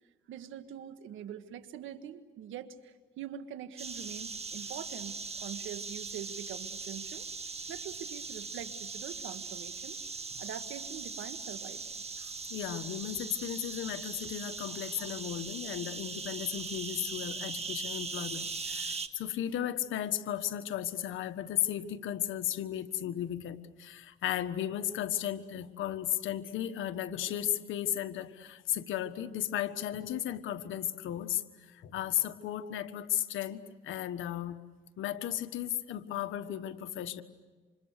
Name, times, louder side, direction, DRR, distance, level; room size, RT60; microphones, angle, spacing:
voice 1, 0.3-7.3 7.7-10.0 10.4-12.0, right 9 dB, 85° right, 10 dB, 1.6 m, -44 dB
sound 1, 3.8-19.1, right 4 dB, 30° right, 1.7 m, -40 dB
voice 2, 12.2-34.6 35.0-37.2, left 11 dB, 80° left, 9 dB, 1.4 m, -35 dB
29.0 x 26.5 x 6.7 m, 1.4 s
cardioid pair, 90°, 20 cm